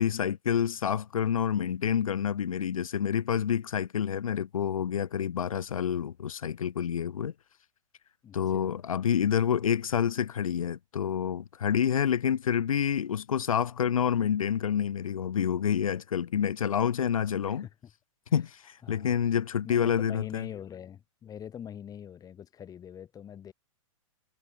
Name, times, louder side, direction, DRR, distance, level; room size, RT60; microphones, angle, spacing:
voice 1, 0.0-7.3 8.3-17.7 18.3-20.5, left 8 dB, 90° left, 1.0 m, -28 dB
voice 2, 8.2-8.7 17.4-17.9 18.3-18.4 18.8-19.2 19.6-23.5, left 9 dB, 20° left, 5.7 m, -44 dB
hypercardioid pair, 130°, 17 cm